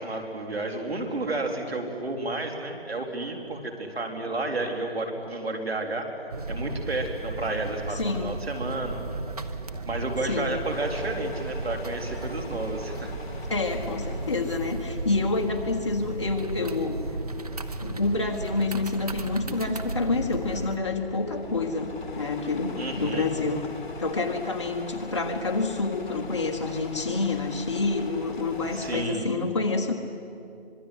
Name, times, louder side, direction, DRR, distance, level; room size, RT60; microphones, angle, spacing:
voice 1, 0.0-6.1 6.5-9.0 9.9-13.1 22.8-23.3 28.7-29.2, right 2 dB, 75° right, 3 dB, 4.2 m, -31 dB
sound 1, 6.3-20.8, right 2 dB, 40° right, 1.0 m, -35 dB
voice 2, 7.9-8.5 10.3-10.5 13.5-17.0 17.8-23.7 24.0-29.9, left 3 dB, 30° left, 2 dB, 1.4 m, -28 dB
sound 2, 10.7-29.1, left 3 dB, 50° left, 2.3 m, -42 dB
25.0 x 22.0 x 8.2 m, 2.6 s
hypercardioid pair, 175°, 31 cm